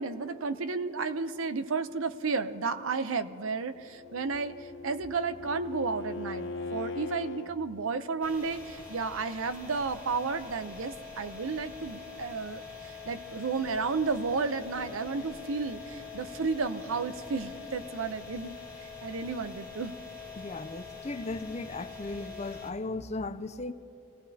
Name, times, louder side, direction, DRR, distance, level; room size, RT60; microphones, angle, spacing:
voice 1, 0.0-4.5 4.8-18.5 19.0-20.0, right 4 dB, 80° right, 11 dB, 0.7 m, -32 dB
Bowed string instrument, 3.8-7.5, left 3 dB, 65° left, 0.8 m, -39 dB
sound 1, 8.2-22.7, left 5 dB, 10° right, 2.8 m, -45 dB
voice 2, 20.4-23.7, left 2 dB, 30° left, 10 dB, 0.5 m, -36 dB
26.5 x 17.5 x 2.8 m, 3.0 s
head